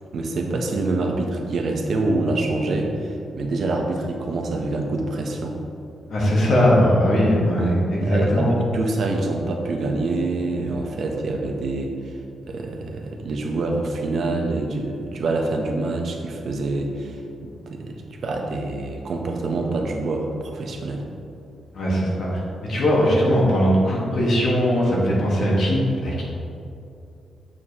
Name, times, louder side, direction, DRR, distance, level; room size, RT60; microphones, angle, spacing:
voice 1, 0.1-5.6 7.6-7.7 8.0-11.9 12.4-17.2 17.4-21.0, right 2 dB, 50° right, 2 dB, 0.7 m, -26 dB
voice 2, 6.1-8.5 21.7-26.2, equal, 55° left, -4 dB, 1.3 m, -20 dB
7.1 x 4.8 x 2.8 m, 2.6 s
wide cardioid pair, 165°, 0 cm